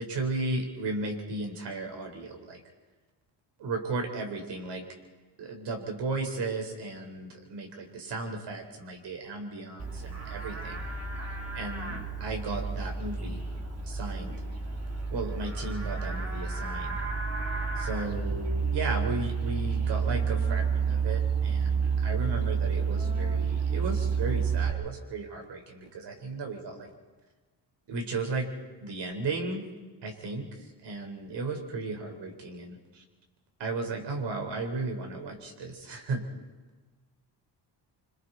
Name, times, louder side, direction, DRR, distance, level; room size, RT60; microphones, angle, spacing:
voice 1, 0.0-2.6 3.6-4.8 5.4-10.8 11.5-13.4 13.8-14.4 15.1-17.0 17.8-26.9 27.9-28.5 28.8-29.7 30.0-33.0 33.6-36.2, right 3 dB, 70° right, 4 dB, 4.2 m, -35 dB
Livestock farm animals working animals, 9.8-24.7, right 5 dB, 35° right, 3.0 m, -30 dB
27.0 x 25.5 x 4.1 m, 1.3 s
cardioid pair, 125°, 43 cm